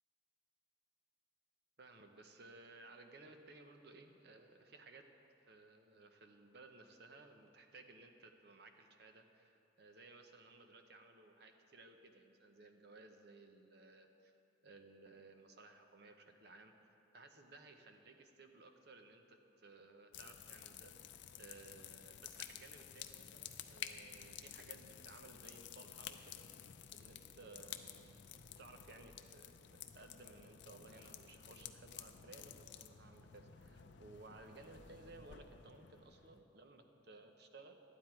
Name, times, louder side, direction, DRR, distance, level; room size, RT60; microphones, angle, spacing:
voice 1, 1.8-5.0 5.5-14.3 14.6-16.7 17.1-20.9 21.4-26.5 26.9-28.2 28.6-37.8, right 3 dB, 60° right, 5 dB, 0.8 m, -59 dB
sound 1, 20.1-36.4, left 9 dB, 70° left, 0.5 m, -53 dB
12.5 x 9.7 x 4.4 m, 2.7 s
head